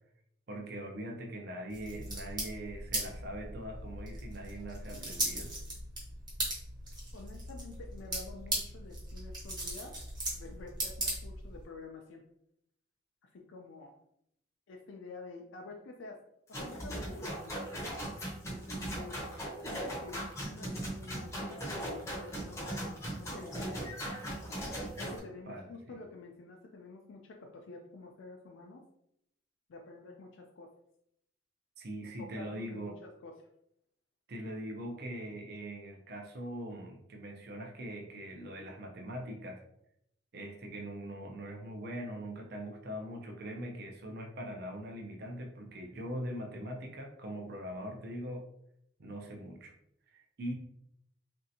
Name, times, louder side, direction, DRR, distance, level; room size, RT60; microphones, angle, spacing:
voice 1, 0.5-5.5 25.5-26.0 31.8-33.0 34.3-39.6 40.3-48.4 49.0-49.7 50.1-50.5, equal, 55° right, 3 dB, 0.5 m, -42 dB
sound 1, 1.7-11.6, right 1 dB, 20° right, 0.9 m, -38 dB
voice 2, 7.1-10.0 10.3-12.2 13.2-14.0 14.7-16.2 16.5-17.7 18.7-19.4 19.6-23.9 25.0-28.8 29.7-30.7 32.0-33.3, left 3 dB, 80° left, 1 dB, 0.4 m, -49 dB
sound 2, 16.5-25.2, right 1 dB, 15° left, 0.6 m, -39 dB
3.2 x 2.7 x 2.7 m, 0.76 s
head